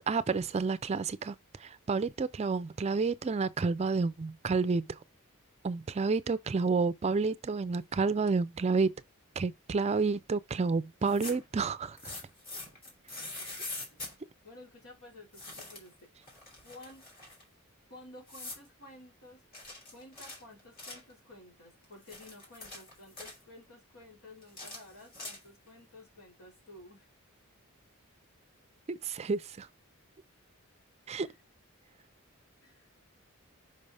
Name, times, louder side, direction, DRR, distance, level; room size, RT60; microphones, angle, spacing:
voice 1, 0.1-5.0 5.6-8.9 9.4-12.1 13.4-13.6 28.9-29.7 31.1-31.3, right 4 dB, 30° right, 0.4 m, -30 dB
sound 1, 10.9-11.5 12.0-14.1 15.3-15.9 16.2-17.4 18.3-18.7 19.5-21.1 21.8-23.4 24.4-25.7, left 2 dB, 45° left, 3.4 m, -44 dB
voice 2, 14.4-16.1 16.6-17.1 17.9-19.4 19.9-27.1 31.2-31.4 32.6-32.9, left 2 dB, 85° left, 3.5 m, -53 dB
5.4 x 5.3 x 3.3 m
head